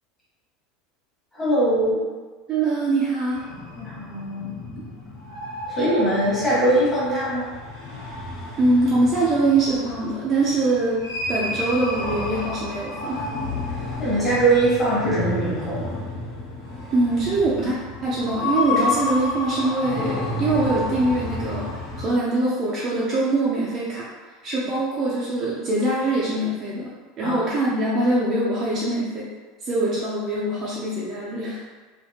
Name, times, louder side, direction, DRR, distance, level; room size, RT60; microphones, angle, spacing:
voice 1, 1.3-2.0 3.8-4.8 5.7-7.5 13.7-15.9 27.2-27.4, right 1 dB, 10° left, -9 dB, 1.1 m, -22 dB
voice 2, 2.5-3.4 8.6-13.3 16.9-24.1 24.4-26.9 27.2-29.3 29.6-31.6, right 2 dB, 25° right, -6 dB, 0.4 m, -23 dB
sound 1, 3.3-22.1, left 2 dB, 85° left, 1.5 m, -31 dB
3.4 x 2.7 x 2.7 m, 1.3 s
supercardioid pair, 175°, 0 cm